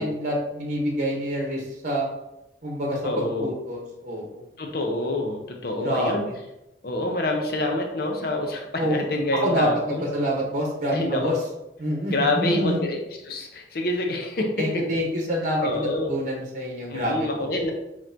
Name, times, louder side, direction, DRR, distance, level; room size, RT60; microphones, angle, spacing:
voice 1, 0.0-2.1 2.6-4.4 5.8-6.3 8.8-9.0 9.4-11.3 11.8-12.8 14.6-17.3, equal, 45° right, 0 dB, 0.9 m, -27 dB
voice 2, 3.0-3.5 4.6-6.3 6.8-10.1 10.9-11.3 12.1-14.9 15.6-16.1 16.9-17.7, left 2 dB, 55° left, 2 dB, 0.7 m, -27 dB
6.2 x 3.0 x 2.6 m, 0.93 s
head